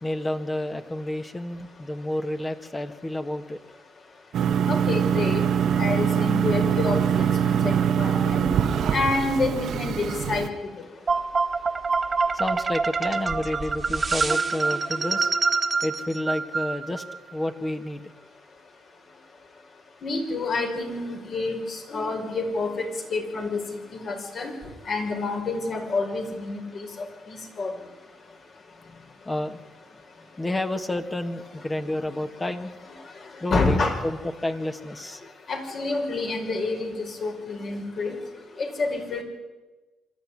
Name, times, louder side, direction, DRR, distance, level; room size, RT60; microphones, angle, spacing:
voice 1, 0.0-3.6 12.3-15.3 15.8-17.0 17.3-18.0 28.8-29.8 30.4-32.7 33.4-35.3, left 1 dB, 20° left, 7 dB, 1.6 m, -30 dB
sound 1, 4.3-10.5, right 8 dB, 70° right, 1.2 m, -23 dB
voice 2, 4.7-5.5 5.8-8.4 8.9-10.5 20.0-23.6 23.9-24.5 24.9-26.9 27.3-27.7 33.5-34.0 35.5-38.2 38.6-39.2, left 3 dB, 55° left, 3 dB, 5.2 m, -28 dB
sound 2, 11.1-17.2, right 4 dB, 30° right, 1.7 m, -26 dB
25.5 x 13.0 x 9.9 m, 1.2 s
cardioid pair, 90°, 0 cm